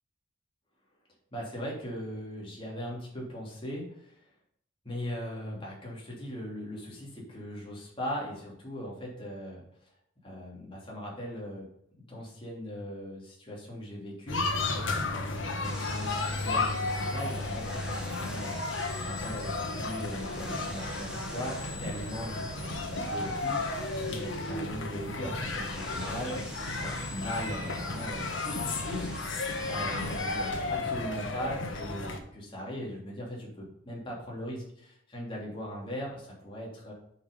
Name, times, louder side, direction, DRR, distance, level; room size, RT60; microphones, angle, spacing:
voice 1, 1.3-4.2 4.8-9.6 10.2-11.7 12.1-18.6 19.0-29.4 29.6-36.9, equal, 25° left, -4 dB, 3.2 m, -39 dB
sound 1, 14.3-32.2, left 2 dB, 65° left, 1.4 m, -33 dB
sound 2, 15.6-30.5, equal, 5° right, 1.8 m, -45 dB
8.2 x 6.0 x 5.5 m, 0.72 s
head